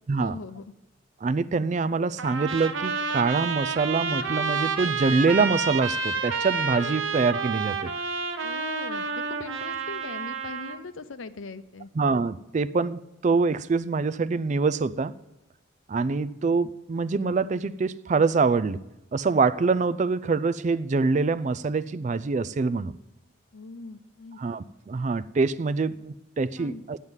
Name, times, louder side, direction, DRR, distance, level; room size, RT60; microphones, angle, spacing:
voice 1, 0.2-0.6 8.4-11.9 23.5-24.4 26.6-26.8, left 3 dB, 85° left, 0.7 m, -40 dB
voice 2, 1.2-7.9 12.0-15.1 15.9-18.8 19.1-23.0 24.4-27.0, right 4 dB, 35° right, 0.3 m, -25 dB
Trumpet, 2.2-10.8, right 5 dB, 75° right, 0.8 m, -29 dB
9.2 x 8.0 x 7.2 m
head